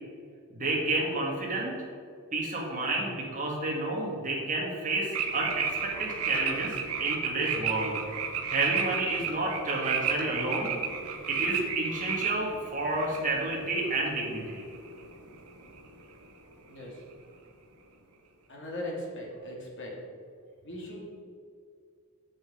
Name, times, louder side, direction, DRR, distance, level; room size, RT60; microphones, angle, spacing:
voice 1, 0.5-1.7 2.3-8.0 8.5-10.7 11.3-14.6, right 2 dB, 35° right, -2 dB, 2.2 m, -30 dB
sound 1, 5.1-15.4 15.6-16.0, right 6 dB, 80° right, 1.1 m, -33 dB
voice 2, 16.6-17.0 18.5-20.0 20.6-21.1, left 1 dB, 55° left, -2 dB, 2.5 m, -39 dB
8.0 x 7.5 x 5.1 m, 2.2 s
head